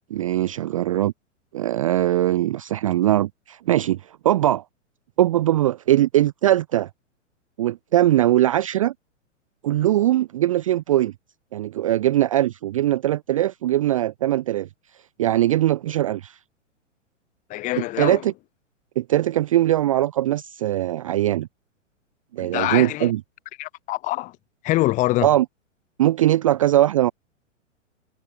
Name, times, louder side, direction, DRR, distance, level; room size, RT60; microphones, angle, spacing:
voice 1, 0.1-1.1 1.5-4.6 5.2-6.9 7.6-8.9 9.6-11.1 11.5-14.7 15.2-16.4 17.8-18.3 19.0-21.5 22.3-23.2 25.2-25.5 26.0-27.1, right 13 dB, 30° right, 0.4 m, -21 dB
voice 2, 17.5-18.2 22.4-23.1 23.6-24.3 24.6-25.3, left 18 dB, 20° left, 0.8 m, -24 dB
figure-of-eight pair, 115°, 38 cm